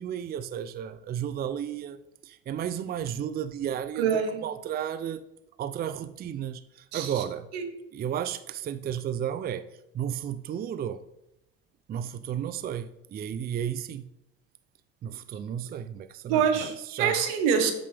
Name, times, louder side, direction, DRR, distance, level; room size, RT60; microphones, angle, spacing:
voice 1, 0.0-4.1 4.4-5.2 5.6-7.5 7.9-9.7 9.9-11.0 11.9-14.1 15.0-17.1, right 9 dB, 30° right, 0.4 m, -33 dB
voice 2, 4.0-4.4 6.9-7.2 7.5-7.7 16.3-17.7, right 7 dB, 80° right, 1.3 m, -25 dB
8.8 x 6.8 x 3.4 m
supercardioid pair, 85°, 29 cm